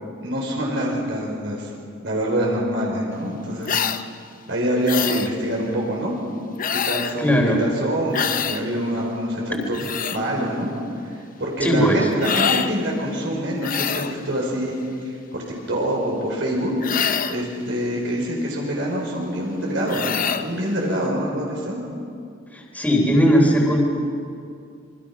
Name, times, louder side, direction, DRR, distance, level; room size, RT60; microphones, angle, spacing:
voice 1, 0.2-1.7 2.0-3.8 4.5-6.1 6.7-9.8 10.1-10.7 11.4-14.8 15.0-16.7 17.3-21.8, equal, 70° right, -2 dB, 5.2 m, -25 dB
sound 1, 3.6-4.0 4.9-5.3 6.6-7.2 8.1-8.6 9.5-10.2 12.2-12.7 13.6-14.2 16.8-17.4 19.9-20.5, left 7 dB, 45° left, 0.8 m, -25 dB
voice 2, 7.2-7.6 11.6-12.1 22.5-23.8, equal, 10° left, -1 dB, 3.6 m, -18 dB
27.0 x 23.5 x 6.1 m, 2.4 s
head